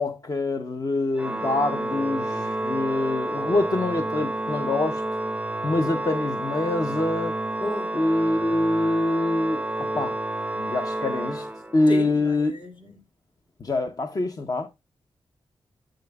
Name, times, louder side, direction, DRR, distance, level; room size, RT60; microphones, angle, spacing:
voice 1, 0.0-5.0 5.6-7.4 7.9-10.2 10.6-12.5 13.6-14.7, left 2 dB, 40° left, 0.8 m, -25 dB
Organ, 1.1-12.0, right 1 dB, 10° right, 0.6 m, -30 dB
voice 2, 7.6-8.0 11.9-13.0, left 2 dB, 65° left, 2.8 m, -34 dB
10.0 x 7.8 x 2.3 m
cardioid pair, 75°, 10 cm